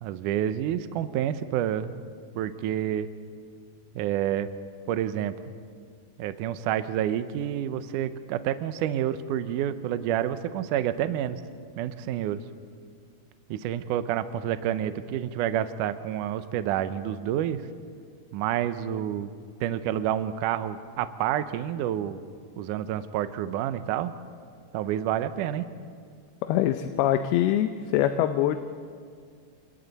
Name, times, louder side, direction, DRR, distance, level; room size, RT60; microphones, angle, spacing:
voice 1, 0.0-2.0 2.4-3.1 4.0-4.5 4.9-5.3 6.2-11.4 11.8-12.4 13.5-17.6 18.3-19.3 19.6-22.2 22.6-24.1 24.7-25.6, right 11 dB, 90° right, 11 dB, 1.8 m, -28 dB
voice 2, 26.4-28.6, left 12 dB, 80° left, 8 dB, 2.6 m, -24 dB
28.5 x 27.0 x 4.1 m, 2.1 s
omnidirectional pair, 4.6 m